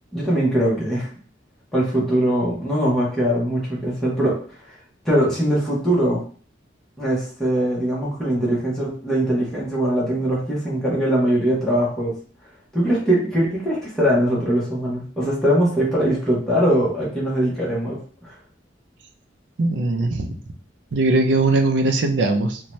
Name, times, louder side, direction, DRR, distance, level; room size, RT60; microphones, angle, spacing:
voice 1, 0.1-1.1 1.7-4.4 5.0-6.2 7.0-12.1 12.7-18.3, right 1 dB, ahead, -7 dB, 0.8 m, -21 dB
voice 2, 19.6-20.4 20.9-22.6, right 2 dB, 70° right, 3 dB, 0.4 m, -20 dB
2.7 x 2.2 x 3.0 m, 0.44 s
head